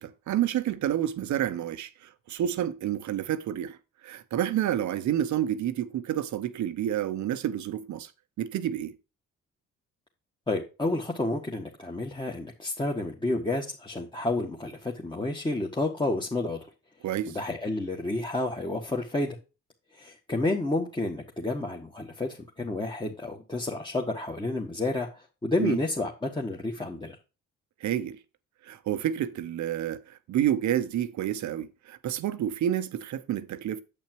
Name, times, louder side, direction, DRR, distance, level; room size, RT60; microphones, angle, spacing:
voice 1, 0.0-3.8 4.0-8.1 8.4-8.9 17.0-17.4 25.6-25.8 27.8-28.2 28.6-33.8, right 11 dB, 70° right, 0.9 m, -29 dB
voice 2, 10.5-16.6 17.3-19.4 20.0-27.1, left 2 dB, 15° left, 1.6 m, -30 dB
8.6 x 7.9 x 3.0 m
cardioid pair, 90°, 30 cm